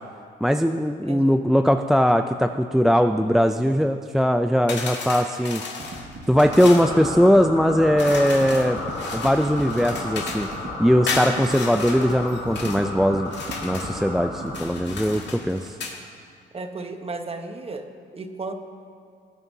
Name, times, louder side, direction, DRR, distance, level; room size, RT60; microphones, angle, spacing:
voice 1, 0.4-5.6 6.3-8.8 9.1-10.5 10.8-13.3 13.6-15.8, equal, ahead, 6 dB, 0.3 m, -20 dB
voice 2, 1.0-1.4 16.5-17.9 18.1-18.5, right 3 dB, 30° right, 6 dB, 1.0 m, -34 dB
sound 1, 4.7-6.9 8.0-10.6 11.1-12.8 13.3-14.0 14.5-16.0, left 4 dB, 60° left, 2.0 m, -33 dB
sound 2, 5.8-15.3, right 3 dB, 55° right, 1.7 m, -38 dB
sound 3, 6.3-14.6, left 2 dB, 90° left, 2.8 m, -33 dB
20.0 x 9.1 x 2.8 m, 2.4 s
cardioid pair, 90°, 20 cm